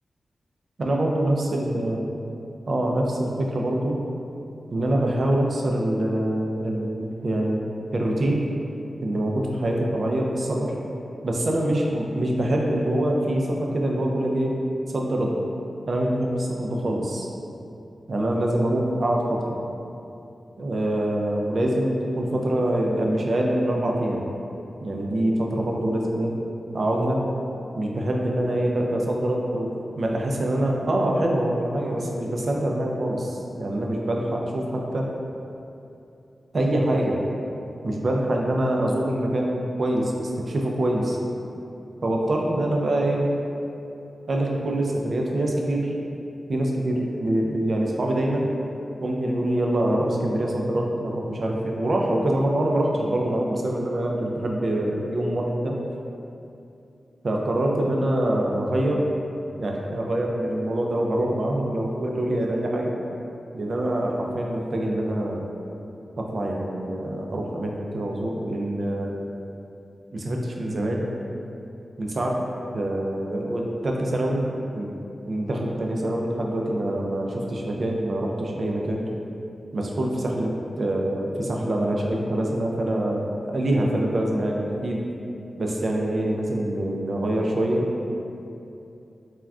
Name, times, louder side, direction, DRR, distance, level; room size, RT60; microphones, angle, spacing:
voice 1, 0.8-2.0 2.7-4.0 4.7-7.6 7.9-8.5 9.0-10.7 11.2-14.5 14.9-15.3 15.9-17.3 18.1-19.6 20.6-24.3 24.8-26.3 26.7-27.2 27.7-35.1 36.5-37.2 37.8-41.2 42.0-43.3 44.3-45.9 46.5-48.5 49.0-55.8 57.2-59.1 59.6-62.9 63.5-65.5 66.2-69.2 70.1-71.1 72.0-72.5 72.7-74.9 75.3-79.0 79.7-80.5 80.8-85.1 85.6-87.9, right 1 dB, 55° right, -1 dB, 0.3 m, -25 dB
3.4 x 2.1 x 2.4 m, 2.7 s
wide cardioid pair, 105°, 0 cm